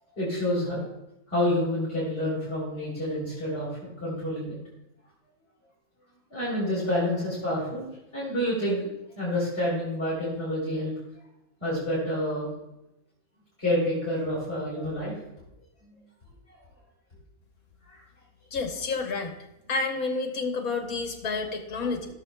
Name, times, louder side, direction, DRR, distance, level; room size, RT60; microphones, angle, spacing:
voice 1, 0.2-0.8 1.3-3.7 4.0-4.6 6.3-8.8 9.2-10.9 11.6-12.5 13.6-15.2 17.9-18.0, left 1 dB, 45° left, -9 dB, 3.6 m, -28 dB
voice 2, 18.5-19.3 19.7-22.1, left 4 dB, 75° left, 4 dB, 1.6 m, -29 dB
16.5 x 6.8 x 2.3 m, 0.89 s
omnidirectional pair, 1.5 m